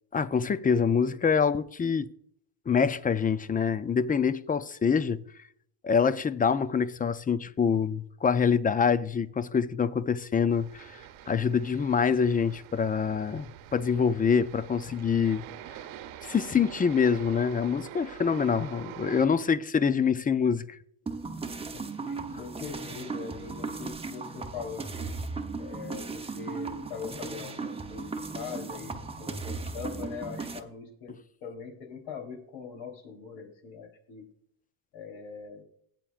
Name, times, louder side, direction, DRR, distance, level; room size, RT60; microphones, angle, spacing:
voice 1, 0.1-2.1 2.7-5.2 5.8-13.5 13.7-15.5 16.2-20.7, left 6 dB, 20° left, 0.4 m, -25 dB
sound 1, 10.5-19.3, right 11 dB, 75° right, 1.1 m, -45 dB
sound 2, 21.1-30.6, right 4 dB, 10° right, 0.9 m, -37 dB
voice 2, 21.7-25.1 25.6-34.3 34.9-35.6, left 6 dB, 75° left, 3.7 m, -42 dB
17.0 x 8.6 x 2.5 m
cardioid pair, 105°, 49 cm